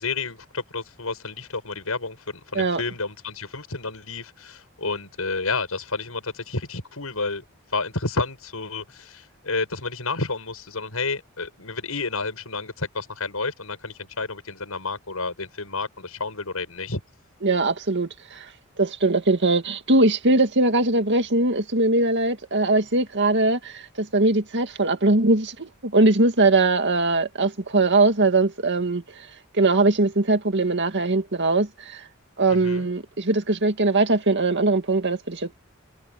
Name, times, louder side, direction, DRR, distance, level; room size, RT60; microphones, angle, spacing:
voice 1, 0.0-7.4 7.7-17.0 32.5-32.9, left 3 dB, 90° left, 6.6 m, -30 dB
voice 2, 17.4-18.5 18.8-29.3 29.5-32.0 32.4-35.5, right 2 dB, 55° right, 2.2 m, -21 dB
head